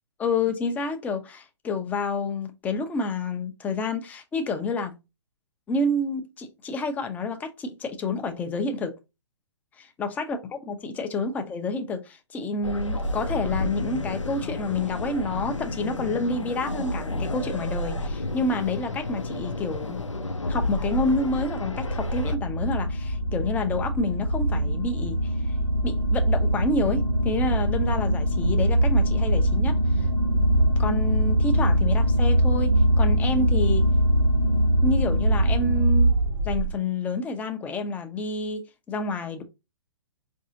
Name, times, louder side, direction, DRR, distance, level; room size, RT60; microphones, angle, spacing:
voice 1, 0.2-5.0 5.7-8.9 9.8-20.0 20.5-25.5 25.8-30.1 30.8-33.9 34.8-36.1 36.4-39.4, left 2 dB, 10° left, 0.4 m, -29 dB
sound 1, 12.6-22.4, left 1 dB, 85° left, 0.5 m, -31 dB
sound 2, 19.6-36.7, right 1 dB, 75° right, 0.9 m, -23 dB
4.6 x 2.6 x 2.7 m
figure-of-eight pair, 120°, 15 cm